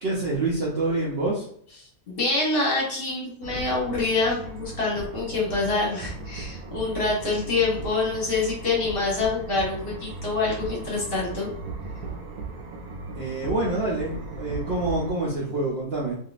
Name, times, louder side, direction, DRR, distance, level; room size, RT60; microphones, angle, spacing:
voice 1, 0.0-1.5 13.1-16.1, right 2 dB, 55° right, -5 dB, 0.8 m, -27 dB
voice 2, 2.1-11.5, left 3 dB, 45° left, -3 dB, 1.1 m, -26 dB
sound 1, 3.4-15.1, right 3 dB, 80° right, 1.1 m, -37 dB
3.5 x 2.6 x 2.4 m, 0.63 s
omnidirectional pair, 1.5 m